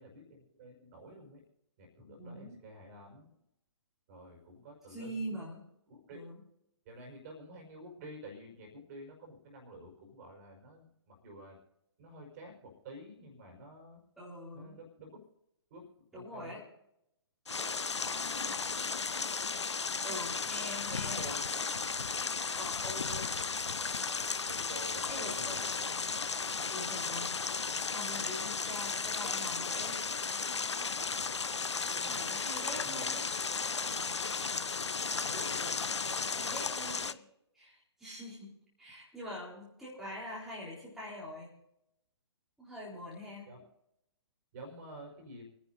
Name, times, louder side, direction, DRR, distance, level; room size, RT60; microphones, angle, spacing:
voice 1, 0.0-1.4 1.8-3.4 4.1-5.5 5.9-6.3 6.9-11.6 12.0-14.0 14.5-15.3 15.7-15.9 16.1-16.6 20.9-21.5 24.5-25.9 31.1-31.6 31.9-32.3 32.7-33.1 34.8-36.5 37.0-37.2 43.5-43.6 44.5-45.5, right 1 dB, 35° right, 1 dB, 5.1 m, -50 dB
voice 2, 2.2-2.6 4.9-5.6 6.1-6.4 14.2-14.8 16.1-16.6 17.5-19.1 20.0-21.6 22.6-23.5 25.1-25.6 26.7-30.4 32.1-33.4 36.3-37.2 37.5-38.5 38.8-41.5 42.6-43.5, equal, ahead, -8 dB, 4.0 m, -44 dB
sound 1, 17.5-37.1, left 5 dB, 75° left, 0.6 m, -35 dB
29.5 x 10.5 x 2.7 m, 0.81 s
figure-of-eight pair, 125°, 15 cm